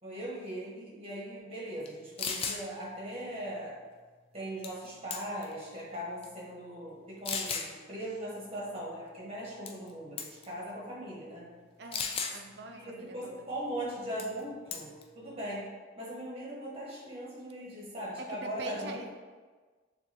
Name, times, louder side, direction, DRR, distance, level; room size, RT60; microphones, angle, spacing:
voice 1, 0.0-3.8 4.3-11.5 12.7-15.6 16.0-19.1, right 1 dB, 30° right, -5 dB, 1.1 m, -39 dB
sound 1, 1.9-2.0 2.2-2.6 4.6-4.9 5.1-5.5 6.2-6.3 7.2-7.7 9.7-9.9 10.2-10.5 11.9-12.4 14.2-14.4 14.7-15.0, left 5 dB, 30° left, 0.3 m, -34 dB
voice 2, 11.8-13.3 18.3-19.1, right 2 dB, 60° right, 3 dB, 0.5 m, -44 dB
6.4 x 2.6 x 2.9 m, 1.4 s
head